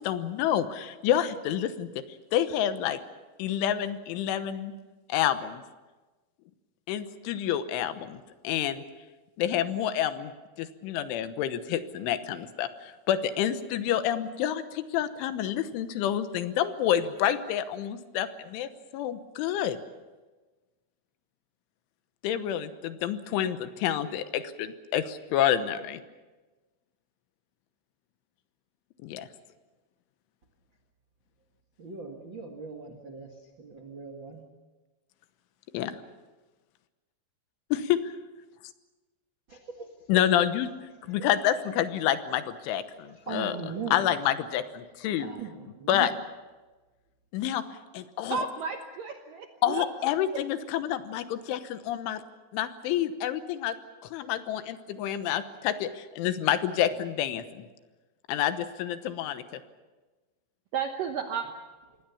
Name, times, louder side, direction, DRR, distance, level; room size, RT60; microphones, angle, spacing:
voice 1, 0.0-1.9 2.3-3.0 3.4-4.7 5.1-5.6 6.9-8.8 9.4-10.3 10.6-19.8 22.2-26.0 29.0-29.3 35.7-36.0 37.7-38.0 40.1-40.7 41.1-43.6 43.9-45.3 45.9-46.1 47.3-47.6 47.9-48.5 49.6-52.2 52.5-53.8 54.1-57.6 58.3-59.6, left 11 dB, 80° left, 11 dB, 3.5 m, -28 dB
voice 2, 31.8-33.3 33.6-34.4 39.5-39.9 41.1-41.2 43.3-44.1 45.2-46.1, right 5 dB, 55° right, 5 dB, 1.3 m, -39 dB
voice 3, 48.3-49.9 50.3-50.4 60.7-61.5, right 6 dB, 75° right, 5 dB, 2.0 m, -33 dB
27.0 x 21.0 x 7.1 m, 1.2 s
omnidirectional pair, 5.5 m